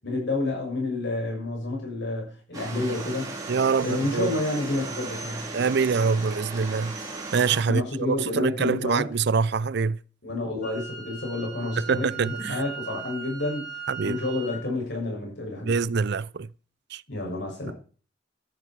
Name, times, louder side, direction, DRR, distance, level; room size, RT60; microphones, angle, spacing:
voice 1, 0.0-3.3 3.8-5.5 7.6-9.1 10.2-13.7 14.0-15.7 17.1-17.7, left 2 dB, 65° left, 7.3 m, -29 dB
sound 1, 2.5-7.6, right 3 dB, 20° right, 4.0 m, -36 dB
voice 2, 3.5-4.3 5.5-6.9 7.3-10.0 11.8-12.6 13.9-14.2 15.6-16.5 16.9-17.0, right 5 dB, 60° right, 0.5 m, -25 dB
Wind instrument woodwind instrument, 10.6-14.6, right 6 dB, 45° left, 7.8 m, -39 dB
13.5 x 12.0 x 4.7 m
head